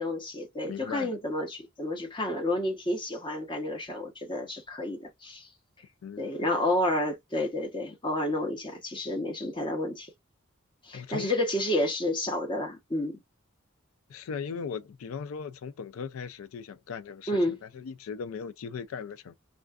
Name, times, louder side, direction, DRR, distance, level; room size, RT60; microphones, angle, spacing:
voice 1, 0.0-5.5 6.2-10.1 10.8-13.2 17.3-17.6, left 1 dB, 25° left, 0.8 m, -30 dB
voice 2, 0.7-1.1 6.0-6.5 10.9-11.3 14.1-19.3, left 6 dB, 75° left, 0.4 m, -38 dB
2.4 x 2.3 x 2.3 m
head